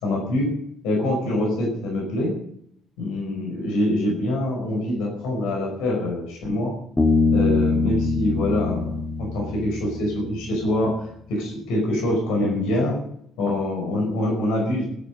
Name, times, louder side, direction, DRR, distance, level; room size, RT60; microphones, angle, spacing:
voice 1, 0.0-0.5 0.8-2.3 3.0-6.7 7.3-10.9 11.3-13.0 13.4-14.9, left 1 dB, 65° left, 0 dB, 5.2 m, -25 dB
Bass guitar, 7.0-10.5, left 3 dB, 15° left, 2.4 m, -23 dB
19.0 x 10.5 x 5.3 m, 0.69 s
figure-of-eight pair, 45°, 0 cm